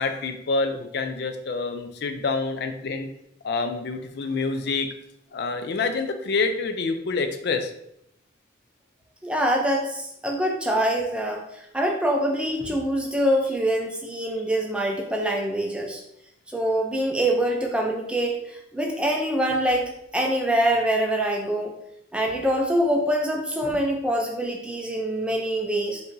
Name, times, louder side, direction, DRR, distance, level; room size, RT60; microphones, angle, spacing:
voice 1, 0.0-3.1 3.4-4.9 5.3-7.7, left 4 dB, 55° left, 6 dB, 0.4 m, -27 dB
voice 2, 9.2-16.0 16.5-21.7 22.1-26.0, right 1 dB, 5° right, 0 dB, 0.4 m, -25 dB
4.6 x 2.6 x 2.6 m, 0.76 s
head